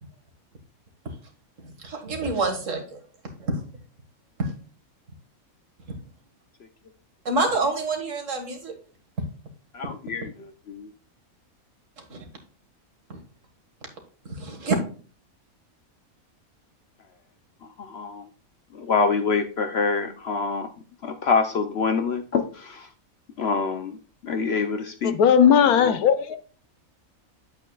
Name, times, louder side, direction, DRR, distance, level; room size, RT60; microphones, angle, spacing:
voice 1, 1.6-3.0 3.4-3.6 4.4-4.5 7.3-8.8 12.1-12.2 13.1-13.2 14.3-14.7, right 3 dB, 60° right, 2.0 m, -27 dB
voice 2, 9.7-10.9 17.6-18.3 18.7-20.7 21.0-22.9 23.4-25.1 25.8-26.0, left 5 dB, 55° left, 0.8 m, -26 dB
voice 3, 25.0-26.4, left 8 dB, 90° left, 1.2 m, -17 dB
9.1 x 7.9 x 2.3 m
omnidirectional pair, 1.5 m